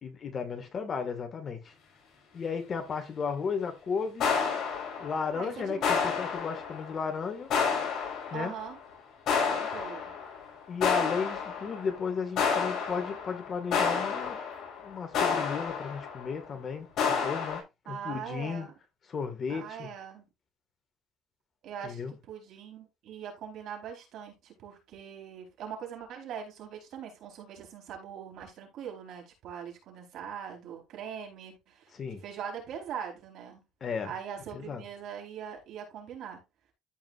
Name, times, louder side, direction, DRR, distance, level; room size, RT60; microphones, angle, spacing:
voice 1, 0.0-1.7 2.3-4.3 5.0-7.5 8.3-8.5 10.7-14.4 14.8-18.7 19.1-19.9 21.8-22.1 31.9-32.2 33.8-34.1 34.5-34.8, left 5 dB, 40° left, 2.1 m, -34 dB
sound 1, 4.2-5.4 5.8-7.1 7.5-8.7 9.3-10.4 10.8-12.0 12.4-16.3 17.0-17.6, left 6 dB, 60° left, 6.2 m, -30 dB
voice 2, 5.3-5.8 8.3-8.8 9.5-10.1 17.9-18.7 19.5-20.3 21.6-33.6 34.1-36.4, right 8 dB, 65° right, 4.3 m, -41 dB
14.0 x 5.2 x 2.6 m
cardioid pair, 125°, 0 cm